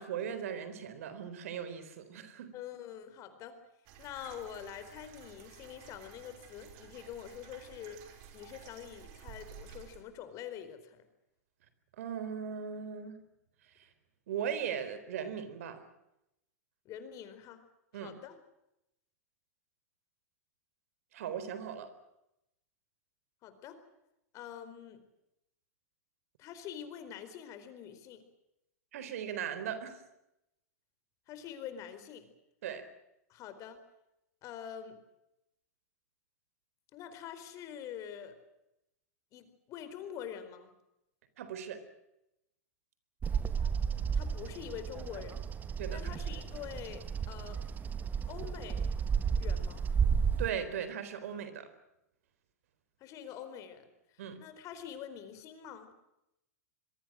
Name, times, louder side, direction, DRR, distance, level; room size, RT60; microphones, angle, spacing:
voice 1, 0.0-2.5 12.0-13.2 13.7-13.9 14.3-15.8 17.9-18.1 21.1-21.9 28.9-30.0 32.6-32.9 41.4-41.8 45.8-46.1 50.4-51.7 54.2-54.4, right 8 dB, 65° right, 12 dB, 4.1 m, -38 dB
voice 2, 2.5-3.6 4.0-11.1 16.8-17.6 18.0-18.4 23.4-23.8 24.3-25.0 26.4-28.2 31.3-32.3 33.3-33.8 34.4-35.0 36.9-38.4 39.3-40.7 44.1-45.4 45.9-47.6 48.3-48.9 49.4-49.8 53.0-53.9 54.4-55.9, left 9 dB, 40° left, 10 dB, 4.4 m, -45 dB
sound 1, 3.8-10.0, right 8 dB, 50° right, 5.5 m, -53 dB
Bird vocalization bird call bird song, 43.2-50.5, right 6 dB, 20° right, 1.5 m, -33 dB
26.0 x 23.0 x 6.4 m, 0.86 s
hypercardioid pair, 105°, 8 cm